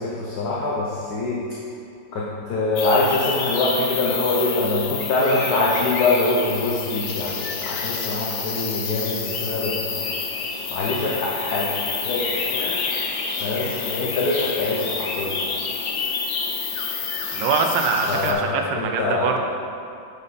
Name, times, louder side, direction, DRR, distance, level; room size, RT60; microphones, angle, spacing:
voice 1, 0.0-1.4 2.1-9.9 10.7-11.7 12.0-12.8 13.4-15.4 18.1-19.3, left 2 dB, 60° left, -5 dB, 1.3 m, -24 dB
sound 1, 2.8-18.3, left 5 dB, 75° left, 0.6 m, -28 dB
voice 2, 17.3-19.4, right 5 dB, 75° right, 4 dB, 1.3 m, -23 dB
8.6 x 5.4 x 4.2 m, 2.5 s
omnidirectional pair, 2.1 m